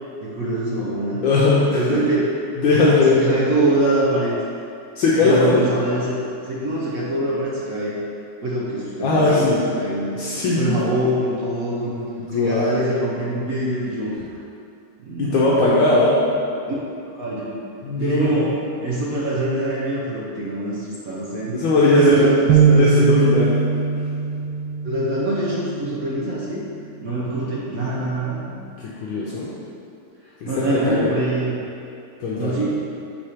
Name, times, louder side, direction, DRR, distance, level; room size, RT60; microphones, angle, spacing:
voice 1, 0.2-1.2 1.7-2.3 3.1-4.3 5.2-7.9 8.4-9.5 9.8-10.1 10.5-14.1 15.0-15.6 16.7-16.8 17.1-17.6 17.9-18.5 18.8-21.6 22.0-23.2 24.8-26.6 27.0-28.4 30.4-31.6 32.3-32.7, right 1 dB, 60° right, -6 dB, 0.9 m, -24 dB
voice 2, 1.2-2.0 2.6-3.4 5.0-5.7 9.0-9.6 10.2-10.8 12.3-12.7 15.2-16.2 17.8-18.5 21.5-22.3 22.7-23.6 29.0-29.5 30.4-31.1 32.2-32.6, left 2 dB, 70° left, -6 dB, 1.4 m, -18 dB
sound 1, 22.5-26.0, right 5 dB, 75° right, 1.3 m, -20 dB
5.9 x 4.3 x 4.9 m, 2.5 s
omnidirectional pair, 2.4 m